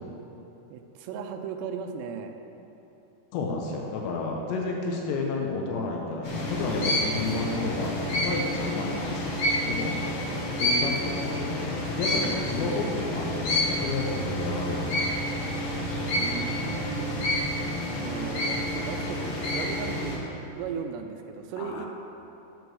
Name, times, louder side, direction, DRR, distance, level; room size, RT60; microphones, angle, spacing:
voice 1, 0.7-2.4 8.3-8.4 10.3-10.5 12.1-12.3 16.2-17.5 18.0-21.9, right 6 dB, 90° right, 5 dB, 2.8 m, -37 dB
voice 2, 3.3-10.0 10.6-15.4 15.8-16.0 21.6-21.9, left 3 dB, 85° left, 0 dB, 3.1 m, -31 dB
sound 1, 6.2-20.2, left 1 dB, 70° left, 1.3 m, -29 dB
sound 2, 13.3-18.5, right 6 dB, 45° right, 2.1 m, -41 dB
12.5 x 6.9 x 4.7 m, 3.0 s
omnidirectional pair, 4.9 m